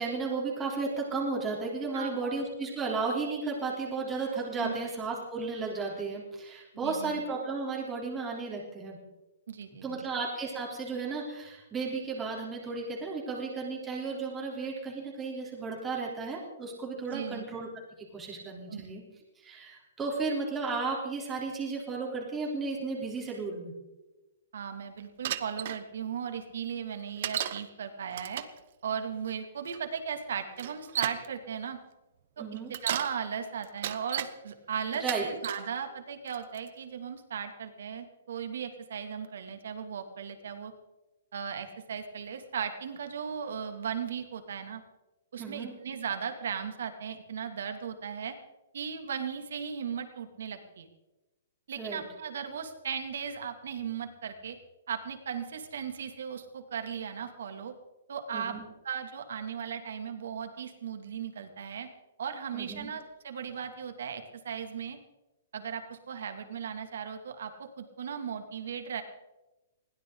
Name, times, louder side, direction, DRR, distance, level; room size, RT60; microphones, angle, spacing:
voice 1, 0.0-9.0 9.8-17.7 18.0-19.0 19.4-23.7 32.4-32.7 35.0-35.3 45.4-45.7 51.8-52.0 58.3-58.6 62.5-62.9, right 4 dB, 10° right, -3 dB, 3.6 m, -34 dB
voice 2, 6.8-7.2 9.5-10.0 17.1-17.5 18.7-18.8 24.5-28.4 28.8-31.8 32.8-40.7 41.3-44.8 45.3-48.3 48.7-50.9 51.7-54.6 54.9-57.7 58.1-58.6 58.8-61.9 62.2-65.0 65.5-69.0, right 7 dB, 70° right, 6 dB, 2.5 m, -37 dB
Bicycle, 25.2-25.8 27.2-27.6 28.1-28.6 29.7-29.8 30.6-31.3 32.6-33.1 33.6-34.3 34.9-35.7 36.3-36.7, right 11 dB, 45° right, 1.0 m, -34 dB
21.0 x 17.0 x 3.9 m, 1.0 s
hypercardioid pair, 165°, 0 cm